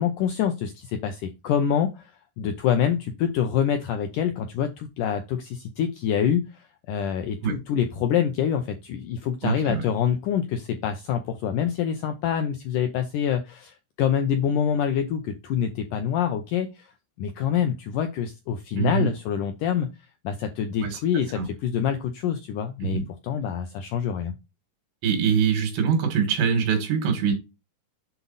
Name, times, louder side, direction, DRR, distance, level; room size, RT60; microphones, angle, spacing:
voice 1, 0.0-2.1 2.4-6.6 6.9-16.9 17.2-19.9 20.2-24.3, left 8 dB, 85° left, 1.8 m, -26 dB
voice 2, 9.4-9.8 18.8-19.1 20.8-21.0 21.4-21.5 22.8-23.0 25.0-27.4, right 6 dB, 85° right, 3.7 m, -23 dB
7.8 x 4.0 x 3.9 m
omnidirectional pair, 4.6 m